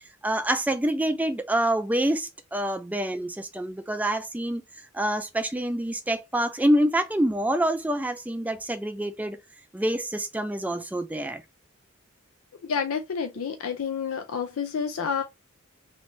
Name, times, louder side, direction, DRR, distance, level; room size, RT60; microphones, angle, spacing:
voice 1, 0.2-4.6 4.9-9.4 9.7-11.4, right 1 dB, 5° right, 0.3 m, -26 dB
voice 2, 12.6-15.2, left 6 dB, 85° left, 0.4 m, -29 dB
3.3 x 2.6 x 3.0 m
head